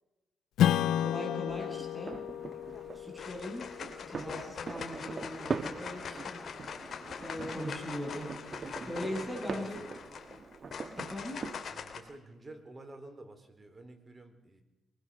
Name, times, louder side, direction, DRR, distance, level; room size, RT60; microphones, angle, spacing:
Strum, 0.6-5.5, left 11 dB, 80° left, 0.6 m, -33 dB
voice 1, 0.8-2.2 2.9-3.7 4.0-6.5 7.1-8.3 8.9-9.8 10.9-11.4, left 1 dB, 5° right, 1 dB, 7.9 m, -40 dB
sound 1, 1.5-11.7, right 5 dB, 40° right, 1.4 m, -42 dB
sound 2, 2.5-2.8 3.2-12.0, left 6 dB, 55° left, 3.0 m, -43 dB
voice 2, 8.6-10.1 11.7-14.6, right 2 dB, 25° right, 7 dB, 4.1 m, -50 dB
23.5 x 20.5 x 6.5 m, 1.0 s
cardioid pair, 90°, 0 cm